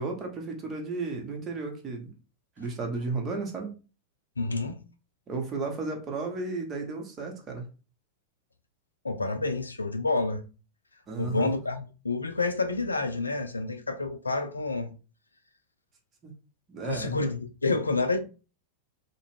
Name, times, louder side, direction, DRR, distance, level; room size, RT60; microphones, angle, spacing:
voice 1, 0.0-2.1 2.6-3.7 5.3-7.7 11.1-11.6 16.2-16.3 16.7-17.2, right 3 dB, 25° right, 0.8 m, -33 dB
voice 2, 4.4-4.8 9.0-10.4 11.2-14.9 16.8-18.2, left 3 dB, 80° left, 0.4 m, -29 dB
2.3 x 2.1 x 3.2 m
figure-of-eight pair, 90°, 0 cm